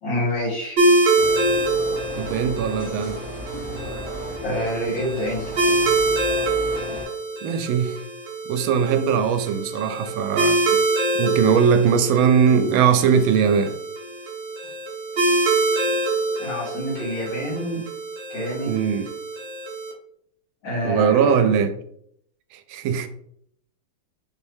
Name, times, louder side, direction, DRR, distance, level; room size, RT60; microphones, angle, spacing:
voice 1, 0.0-0.8 4.4-5.6 16.4-17.8 18.3-18.7 20.6-21.4, equal, 70° left, 2.3 m, -27 dB
sound 1, 0.8-19.9, right 2 dB, 50° right, 0.8 m, -25 dB
sound 2, 1.2-7.0, equal, 55° left, 1.4 m, -35 dB
voice 2, 2.2-3.2 7.4-8.0 8.5-10.8 11.1-13.8 18.7-19.1 20.8-21.8 22.5-23.1, right 7 dB, 85° right, 1.4 m, -20 dB
4.5 x 2.7 x 3.4 m
omnidirectional pair, 2.1 m